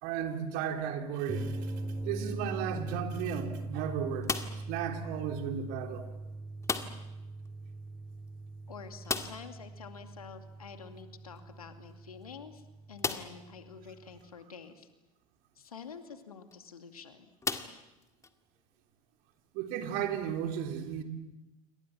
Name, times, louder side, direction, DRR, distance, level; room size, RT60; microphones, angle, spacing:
voice 1, 0.0-1.7 2.0-4.4 4.7-6.0 19.5-21.0, right 8 dB, 55° right, 4 dB, 3.7 m, -34 dB
sound 1, 1.3-14.2, right 2 dB, 10° right, 3.1 m, -42 dB
sound 2, 4.2-4.8 6.6-7.2 7.4-7.5 7.9-8.0 9.0-9.6 11.4-11.5 12.1-12.2 13.0-13.5 14.2-14.3 16.3-16.5 17.4-18.3, left 4 dB, 15° left, 1.9 m, -35 dB
voice 2, 8.7-12.6 12.9-14.9 15.6-17.3, left 6 dB, 80° left, 7 dB, 2.5 m, -48 dB
28.5 x 24.5 x 7.4 m, 1.0 s
figure-of-eight pair, 75°, 18 cm